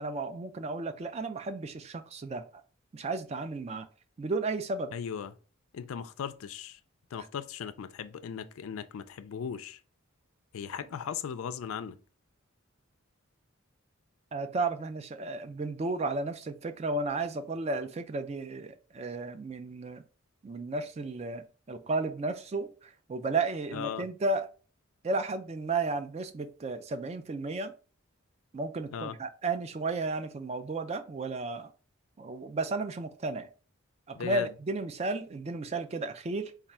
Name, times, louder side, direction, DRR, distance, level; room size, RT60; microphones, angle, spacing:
voice 1, 0.0-2.4 2.9-3.9 4.2-4.9 14.3-20.0 20.4-24.5 25.0-27.7 28.5-31.7 32.2-33.5 34.1-36.5, right 3 dB, 30° right, 0.3 m, -33 dB
voice 2, 4.9-5.3 5.7-6.8 7.1-9.8 10.5-12.0 23.7-24.1 28.9-29.1 34.1-34.5, left 7 dB, 75° left, 0.4 m, -37 dB
3.4 x 2.4 x 4.1 m
head